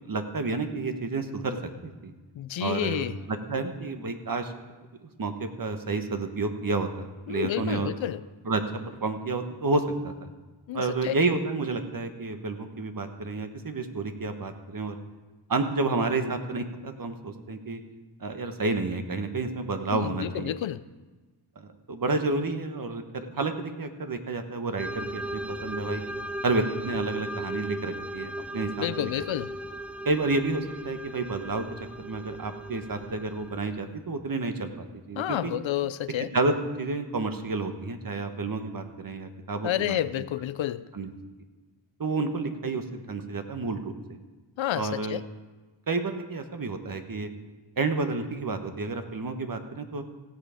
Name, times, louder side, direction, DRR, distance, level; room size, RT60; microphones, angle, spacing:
voice 1, 0.0-1.6 1.8-2.1 2.6-4.5 5.0-7.9 8.4-10.3 10.7-15.0 15.5-17.8 18.2-20.5 21.6-26.0 26.4-29.1 30.0-31.6 32.0-35.5 36.3-40.2 40.9-41.1 42.0-44.2 44.7-45.2 45.9-47.3 47.8-50.0, right 3 dB, 45° right, 7 dB, 1.3 m, -30 dB
voice 2, 2.4-3.2 7.3-8.2 10.7-11.1 19.9-20.8 28.8-29.5 35.2-36.3 39.6-40.8 44.6-45.2, left 12 dB, 75° left, 15 dB, 0.6 m, -30 dB
sound 1, 24.8-33.8, right 1 dB, 5° right, 0.5 m, -37 dB
16.5 x 7.1 x 5.1 m, 1.2 s
cardioid pair, 60°, 46 cm